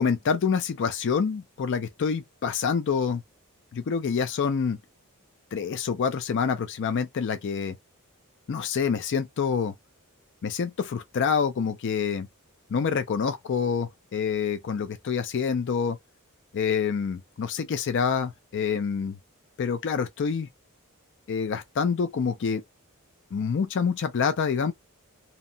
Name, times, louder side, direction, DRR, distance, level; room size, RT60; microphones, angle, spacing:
voice 1, 0.0-3.2 3.7-4.8 5.5-7.8 8.5-9.7 10.4-12.3 12.7-16.0 16.5-19.2 19.6-20.5 21.3-22.6 23.3-24.7, left 6 dB, 55° left, 0.4 m, -27 dB
2.8 x 2.1 x 2.6 m
head